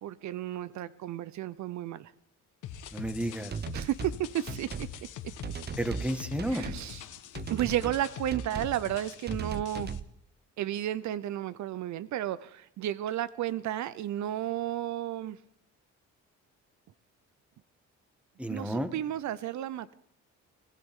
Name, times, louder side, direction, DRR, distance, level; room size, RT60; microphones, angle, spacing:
voice 1, 0.0-2.1 3.7-4.7 6.5-7.0 7.5-9.9 10.6-15.4 18.5-19.9, right 12 dB, 70° right, 0.6 m, -33 dB
sound 1, 2.6-10.0, left 9 dB, 80° left, 1.3 m, -43 dB
voice 2, 2.9-3.5 5.8-6.7 18.4-18.9, right 1 dB, 5° right, 1.6 m, -32 dB
sound 2, 3.5-4.2 4.5-4.9 5.4-6.1 6.4-6.8 7.3-8.0 8.3-8.8 9.3-10.1, right 6 dB, 35° right, 0.7 m, -38 dB
23.5 x 17.0 x 3.6 m
cardioid pair, 90°, 30 cm